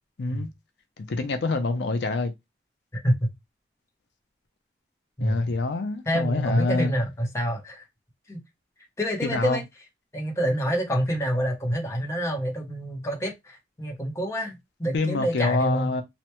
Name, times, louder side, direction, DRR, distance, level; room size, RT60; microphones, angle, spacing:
voice 1, 0.2-0.5 1.0-2.3 5.2-6.9 9.2-9.6 14.9-16.0, left 3 dB, 75° left, 0.5 m, -26 dB
voice 2, 6.1-7.8 8.3-8.4 9.0-9.6 10.1-15.9, equal, 15° left, 0.7 m, -27 dB
3.2 x 2.1 x 2.9 m
head